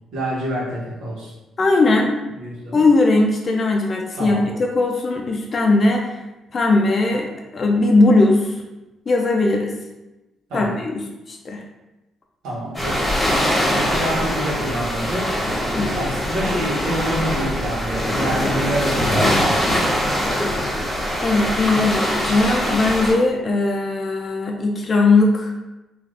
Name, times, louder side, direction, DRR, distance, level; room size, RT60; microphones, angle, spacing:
voice 1, 0.1-1.3 2.3-2.8 4.2-4.4 10.5-10.7 12.4-13.1 13.7-15.5 15.9-19.3, equal, 85° right, -5 dB, 1.0 m, -27 dB
voice 2, 1.6-2.2 2.7-6.2 6.5-8.6 9.1-9.7 10.5-11.0 11.3-11.6 15.7-16.1 21.2-25.5, left 2 dB, 40° left, 1 dB, 0.4 m, -19 dB
sound 1, 12.7-23.1, equal, 10° left, 1.0 m, -22 dB
3.2 x 2.4 x 2.5 m, 1.0 s
cardioid pair, 90°, 0 cm